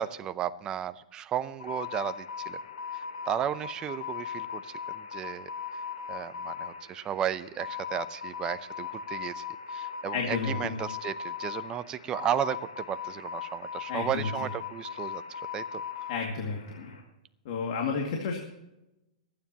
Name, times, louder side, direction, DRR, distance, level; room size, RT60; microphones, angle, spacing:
voice 1, 0.0-2.6 2.9-5.8 6.1-15.8, right 10 dB, 20° right, 13 dB, 0.6 m, -34 dB
sound 1, 1.6-17.0, left 7 dB, 85° left, 3.5 m, -39 dB
voice 2, 10.1-10.8 13.9-14.3 16.1-16.9 17.5-18.4, left 5 dB, 50° left, 1 dB, 2.3 m, -31 dB
25.5 x 9.4 x 2.9 m, 0.92 s
hypercardioid pair, 150°, 4 cm